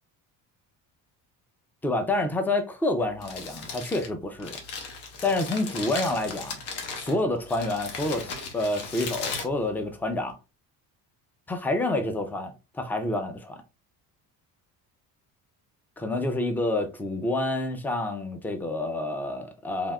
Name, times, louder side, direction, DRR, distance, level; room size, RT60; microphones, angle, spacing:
voice 1, 1.8-4.6 5.2-6.6 7.0-10.4 11.5-13.6 16.0-19.9, left 2 dB, 5° left, 0.3 m, -28 dB
Crumpling crinkling, 3.0-10.3, left 4 dB, 75° left, 1.0 m, -37 dB
3.4 x 2.7 x 2.3 m
cardioid pair, 125°, 41 cm